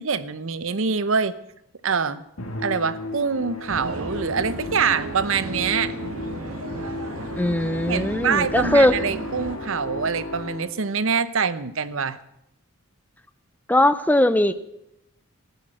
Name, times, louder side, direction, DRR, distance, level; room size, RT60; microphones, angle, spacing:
voice 1, 0.0-1.4 1.8-2.2 2.6-5.9 7.9-12.2, right 5 dB, 70° right, 15 dB, 0.8 m, -25 dB
Musical instrument, 2.4-10.9, left 2 dB, 85° left, 2.2 m, -35 dB
sound 1, 3.7-9.6, right 2 dB, 85° right, 2.0 m, -34 dB
voice 2, 7.4-9.0 13.7-14.5, left 1 dB, 10° left, 13 dB, 0.6 m, -19 dB
14.5 x 11.0 x 7.7 m, 0.84 s
head